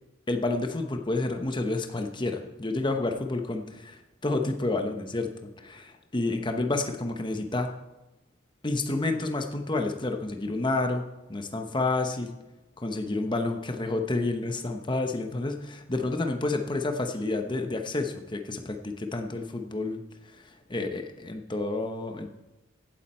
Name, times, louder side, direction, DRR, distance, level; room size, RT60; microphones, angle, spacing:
voice 1, 0.3-7.7 8.6-12.4 12.8-22.3, left 2 dB, 20° left, 5 dB, 0.9 m, -30 dB
16.0 x 8.8 x 4.4 m, 1.0 s
head